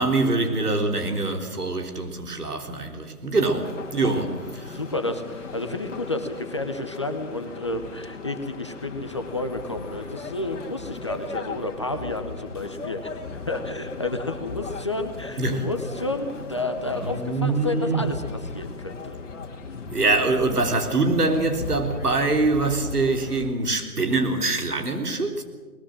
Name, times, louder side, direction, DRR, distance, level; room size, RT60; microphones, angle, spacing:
voice 1, 0.0-4.4 4.7-4.8 15.4-15.6 17.0-18.1 19.9-25.4, right 3 dB, 80° right, 3.7 m, -24 dB
sound 1, 3.6-23.5, left 4 dB, 50° left, 2.5 m, -37 dB
voice 2, 4.7-13.2 13.5-19.2, left 2 dB, 20° left, 0.7 m, -31 dB
21.0 x 20.0 x 7.6 m
figure-of-eight pair, 155°, 45 cm